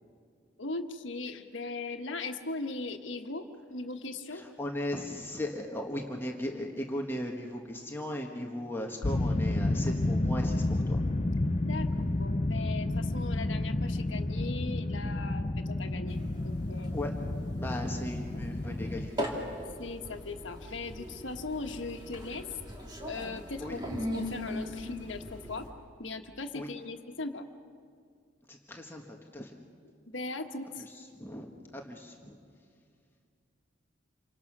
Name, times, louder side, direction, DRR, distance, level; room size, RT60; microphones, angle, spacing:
voice 1, 0.6-4.4 11.6-16.2 16.4-17.0 19.8-22.5 23.1-25.7 26.0-27.5 30.1-30.8, left 3 dB, 80° left, 6 dB, 1.4 m, -39 dB
voice 2, 4.3-11.0 16.9-17.2 17.6-19.3 23.6-23.8 26.5-26.7 28.5-29.5 30.8-32.4, left 1 dB, 10° left, 1 dB, 1.4 m, -37 dB
sound 1, 9.0-19.1, left 2 dB, 35° left, 0.6 m, -30 dB
sound 2, 16.1-25.7, equal, 20° right, 2.4 m, -40 dB
28.0 x 25.0 x 6.1 m, 2.2 s
head